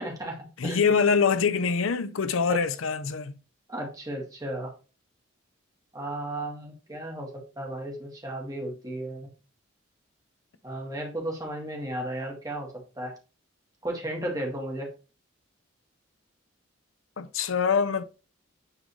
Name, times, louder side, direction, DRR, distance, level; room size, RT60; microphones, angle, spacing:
voice 1, 0.0-0.9 2.5-2.6 3.7-4.7 5.9-9.3 10.6-12.7 13.0-13.1 13.8-14.9, right 1 dB, 20° right, 1.9 m, -34 dB
voice 2, 0.6-3.4 17.2-18.0, left 5 dB, 80° left, 0.6 m, -24 dB
9.8 x 3.9 x 3.1 m
head